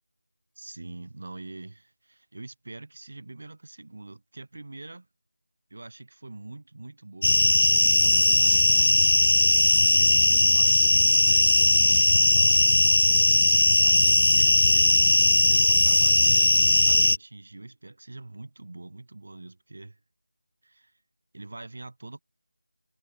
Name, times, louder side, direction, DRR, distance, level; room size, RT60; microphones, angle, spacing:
voice 1, 0.5-5.1 5.7-13.4 13.8-15.2 15.5-20.0 20.6-20.9 21.3-22.2, right 2 dB, 40° right, 3.3 m, -44 dB
sound 1, 7.2-17.2, left 2 dB, 60° left, 0.3 m, -19 dB
Musical instrument, 8.4-10.4, right 8 dB, 10° right, 4.1 m, -58 dB
figure-of-eight pair, 180°, 0 cm